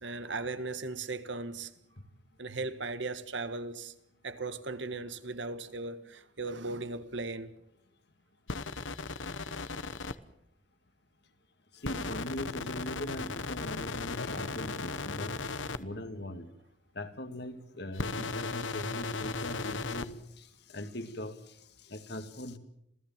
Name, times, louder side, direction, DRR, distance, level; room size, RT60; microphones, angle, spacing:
voice 1, 0.0-1.7 2.4-3.9 4.2-7.6, right 3 dB, 75° right, 1.7 m, -37 dB
sound 1, 8.5-10.2 11.8-15.8 17.9-20.1, left 4 dB, 80° left, 1.1 m, -36 dB
voice 2, 11.7-15.3 15.8-16.5 16.9-22.6, left 1 dB, 60° left, 2.2 m, -40 dB
27.5 x 17.0 x 7.5 m
head